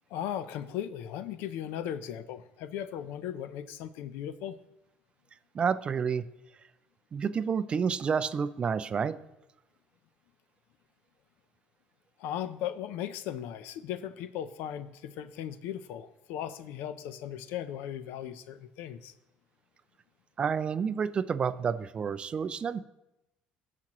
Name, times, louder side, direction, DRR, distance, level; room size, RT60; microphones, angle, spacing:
voice 1, 0.1-4.6 12.2-19.1, left 10 dB, 80° left, 13 dB, 0.6 m, -37 dB
voice 2, 5.5-6.2 7.1-9.2 20.4-22.8, right 6 dB, 30° right, 14 dB, 0.4 m, -29 dB
17.5 x 5.9 x 3.0 m, 0.92 s
cardioid pair, 125°, 3 cm